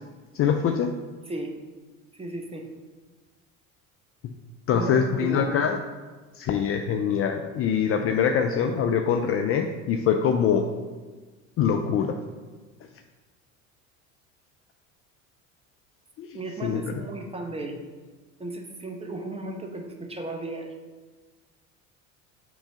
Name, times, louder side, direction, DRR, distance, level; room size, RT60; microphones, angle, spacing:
voice 1, 0.3-0.9 4.7-5.8 6.4-10.7 11.6-12.1 16.2-16.3 16.6-16.9, left 7 dB, 35° left, 5 dB, 0.4 m, -24 dB
voice 2, 2.1-2.7 4.7-5.6 16.3-17.8 18.4-20.7, right 2 dB, 15° right, 3 dB, 0.9 m, -35 dB
6.1 x 3.3 x 5.4 m, 1.3 s
hypercardioid pair, 65°, 41 cm